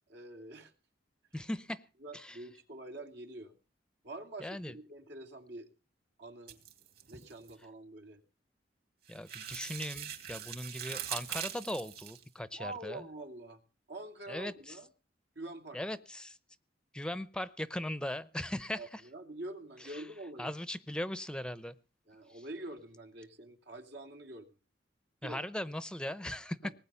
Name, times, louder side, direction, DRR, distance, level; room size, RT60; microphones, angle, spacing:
voice 1, 0.1-0.7 2.0-3.5 4.0-5.7 6.2-6.6 7.1-8.2 12.5-13.6 13.9-14.9 15.3-15.8 18.8-20.5 22.1-24.5 25.2-25.4 26.6-26.7, right 2 dB, 75° right, 5 dB, 2.9 m, -46 dB
voice 2, 1.3-1.8 2.1-2.4 4.4-4.7 9.1-13.0 14.3-14.8 15.7-16.4 16.9-19.0 19.8-20.0 20.4-21.7 25.2-26.6, left 1 dB, 5° left, 15 dB, 0.7 m, -39 dB
sound 1, 6.5-7.5 9.1-12.2, right 10 dB, 55° right, 3.7 m, -42 dB
19.5 x 9.3 x 7.0 m, 0.37 s
head